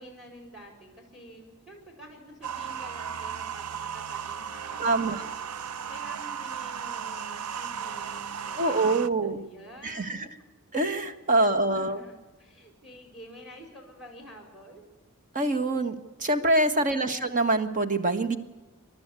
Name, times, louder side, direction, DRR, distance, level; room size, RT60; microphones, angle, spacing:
voice 1, 0.0-10.3 11.3-14.9 16.7-17.2, equal, ahead, 2 dB, 4.5 m, -49 dB
sound 1, 2.4-9.1, right 7 dB, 90° right, 0.6 m, -35 dB
voice 2, 4.8-5.2 8.6-9.4 9.8-10.2 10.7-12.0 15.3-18.4, right 2 dB, 35° right, 9 dB, 1.5 m, -25 dB
28.0 x 12.0 x 8.4 m, 1.2 s
head